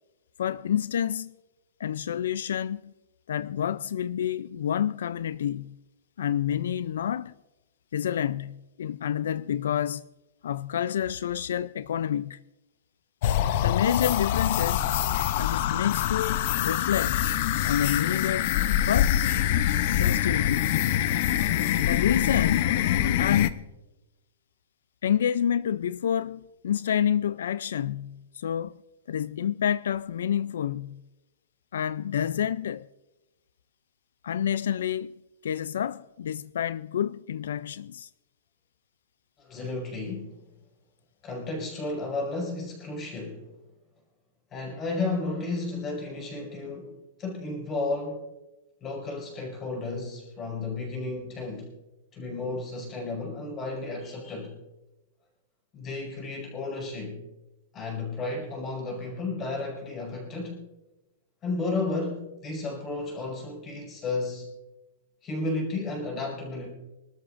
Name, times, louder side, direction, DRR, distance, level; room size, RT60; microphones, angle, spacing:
voice 1, 0.4-1.3 1.8-2.9 3.3-5.8 6.2-7.3 7.9-10.0 10.4-12.4 13.6-14.9 15.4-17.2 17.6-18.5 18.9-19.2 20.0-20.8 21.9-22.8 23.2-23.7 25.0-28.8 29.1-31.0 31.7-32.9 34.2-35.2 35.4-38.1, left 9 dB, 80° left, 0.3 m, -28 dB
sound 1, 13.2-23.5, left 11 dB, 45° left, 0.6 m, -25 dB
voice 2, 39.4-40.4 41.2-43.5 44.5-46.9 47.2-48.3 48.8-51.7 52.1-54.6 55.7-57.2 57.7-60.6 61.4-64.5 65.2-66.7, left 3 dB, 20° left, 5.0 m, -33 dB
26.0 x 13.0 x 2.5 m
supercardioid pair, 165°, 0 cm